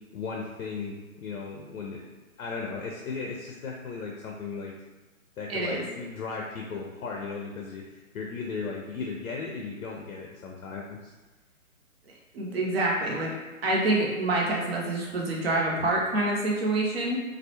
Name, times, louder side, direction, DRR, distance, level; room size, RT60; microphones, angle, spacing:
voice 1, 0.1-2.0 2.4-4.7 5.4-11.1, left 4 dB, 85° left, -1 dB, 0.6 m, -36 dB
voice 2, 5.5-5.9 12.3-13.3 13.6-17.2, right 2 dB, 45° right, -3 dB, 0.6 m, -26 dB
2.3 x 2.0 x 2.8 m, 1.2 s
hypercardioid pair, 155°, 42 cm